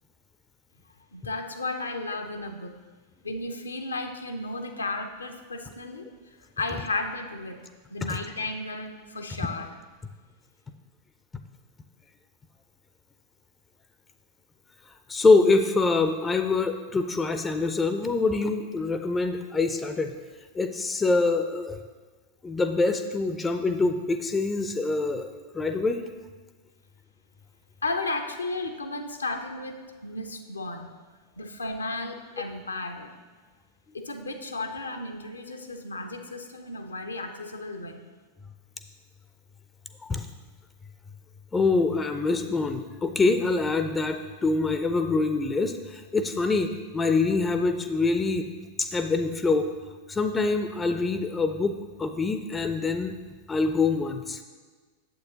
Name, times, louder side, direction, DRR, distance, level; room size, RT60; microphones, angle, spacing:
voice 1, 1.1-2.8 3.2-7.6 7.9-9.7 27.8-30.9 31.4-33.1 33.9-38.0, left 2 dB, 80° left, 5 dB, 0.6 m, -34 dB
voice 2, 15.1-20.1 20.5-21.8 22.4-26.0 40.0-40.3 41.5-48.5 48.8-49.7 50.1-53.1 53.5-54.4, left 3 dB, 15° left, 7 dB, 0.4 m, -25 dB
8.6 x 7.5 x 2.9 m, 1.4 s
figure-of-eight pair, 90°, 0 cm